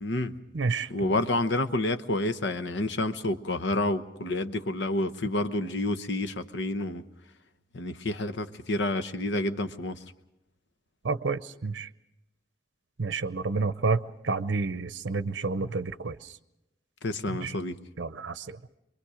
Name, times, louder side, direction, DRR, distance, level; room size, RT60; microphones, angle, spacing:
voice 1, 0.0-0.4 0.9-7.0 7.7-10.0 17.0-17.8, left 2 dB, 85° left, 10 dB, 1.0 m, -29 dB
voice 2, 0.5-1.2 11.0-11.9 13.0-16.3 17.3-17.6 18.0-18.6, right 4 dB, 85° right, 13 dB, 0.7 m, -30 dB
24.5 x 23.0 x 5.0 m, 0.91 s
head